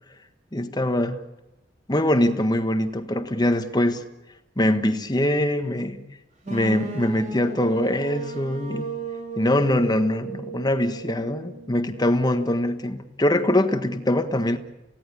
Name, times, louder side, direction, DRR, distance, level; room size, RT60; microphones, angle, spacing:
voice 1, 0.5-1.2 1.9-4.1 4.6-6.0 6.5-8.9 9.4-14.6, left 1 dB, 20° left, 9 dB, 1.5 m, -23 dB
sound 1, 6.4-12.3, right 3 dB, 40° right, 4.3 m, -35 dB
29.0 x 17.0 x 8.6 m, 0.97 s
head